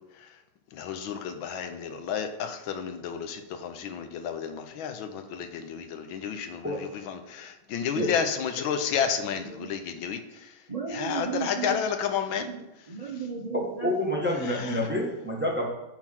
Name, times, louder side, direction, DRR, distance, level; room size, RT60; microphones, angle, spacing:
voice 1, 0.7-6.7 7.1-10.5 10.9-12.5 14.5-14.7, left 7 dB, 75° left, 7 dB, 1.5 m, -31 dB
voice 2, 9.2-9.8 10.7-11.9 12.3-14.2, right 6 dB, 85° right, -1 dB, 0.3 m, -36 dB
voice 3, 13.8-15.7, left 1 dB, 5° right, -3 dB, 1.1 m, -28 dB
8.8 x 3.9 x 5.9 m, 1.0 s
omnidirectional pair, 2.2 m